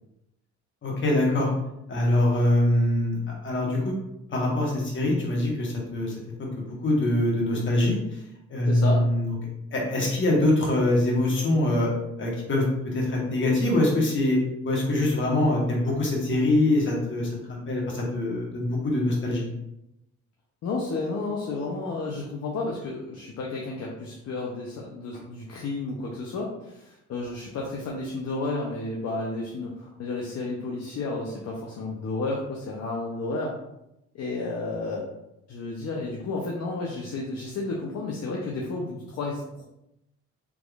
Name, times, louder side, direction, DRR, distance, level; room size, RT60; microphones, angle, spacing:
voice 1, 0.8-1.5 1.9-4.0 4.3-6.1 6.6-8.2 8.5-9.3 9.7-11.9 12.2-14.4 14.6-19.5, left 1 dB, 40° left, -2 dB, 1.2 m, -24 dB
voice 2, 8.7-9.1 20.6-33.6 34.1-35.0 35.5-39.6, left 3 dB, 55° left, -1 dB, 0.6 m, -32 dB
3.6 x 3.0 x 2.3 m, 0.85 s
cardioid pair, 90°, 30 cm